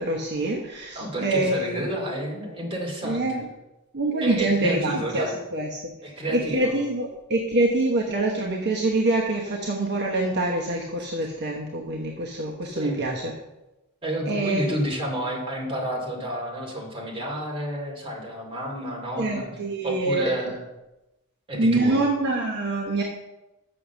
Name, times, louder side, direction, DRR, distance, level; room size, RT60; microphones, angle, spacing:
voice 1, 0.0-1.9 3.0-3.5 3.9-5.3 5.5-5.9 6.3-13.3 14.3-14.8 19.2-20.3 21.6-23.0, right 2 dB, 50° right, -1 dB, 1.1 m, -25 dB
voice 2, 0.9-3.5 4.2-5.4 6.0-6.8 12.7-13.0 14.0-19.5 19.8-20.6 21.5-22.0, right 1 dB, 25° right, -2 dB, 2.6 m, -30 dB
7.2 x 6.2 x 7.0 m, 0.99 s
head